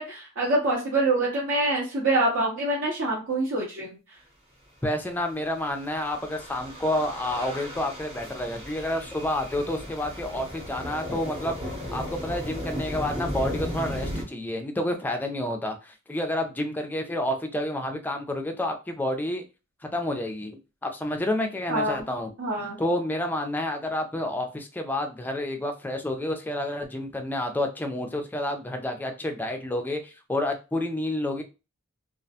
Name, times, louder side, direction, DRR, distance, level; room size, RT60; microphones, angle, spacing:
voice 1, 0.0-4.0 21.7-22.0 22.4-22.8, right 2 dB, 60° right, -5 dB, 0.7 m, -25 dB
voice 2, 4.8-19.4 19.9-22.3 22.8-31.4, left 1 dB, 10° left, 4 dB, 0.3 m, -29 dB
sound 1, 5.3-14.2, equal, 25° right, 0.8 m, -36 dB
2.3 x 2.1 x 2.6 m, 0.30 s
head